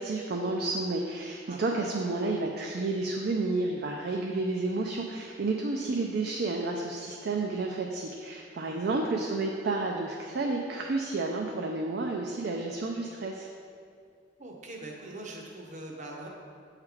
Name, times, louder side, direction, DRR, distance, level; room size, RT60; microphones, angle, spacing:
voice 1, 0.0-13.5, right 3 dB, 55° right, 1 dB, 0.5 m, -31 dB
voice 2, 8.7-9.0 14.4-16.3, right 2 dB, 40° right, 0 dB, 0.8 m, -42 dB
8.3 x 3.3 x 4.8 m, 2.3 s
head